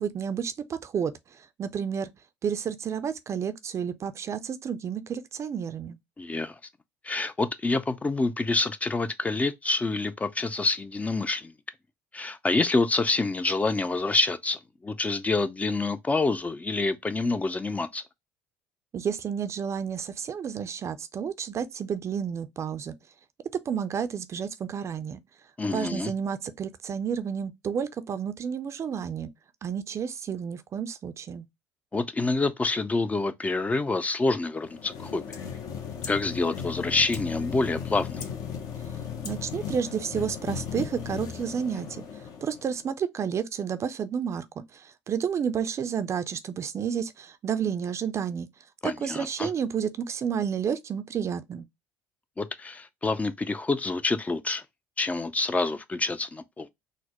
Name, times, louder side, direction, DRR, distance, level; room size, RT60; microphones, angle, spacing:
voice 1, 0.0-2.1 2.4-6.0 18.9-22.9 23.7-25.2 25.7-29.3 29.6-31.5 39.2-42.0 42.4-48.5 48.8-51.7, right 7 dB, 40° right, 0.5 m, -31 dB
voice 2, 6.2-6.6 7.0-11.5 12.1-18.0 25.6-26.1 31.9-35.3 36.1-38.2 48.8-49.5 52.4-54.6 55.0-56.7, left 3 dB, 20° left, 0.4 m, -27 dB
sound 1, 34.6-42.8, left 7 dB, 55° left, 0.8 m, -36 dB
4.0 x 2.0 x 2.9 m
hypercardioid pair, 70°, 7 cm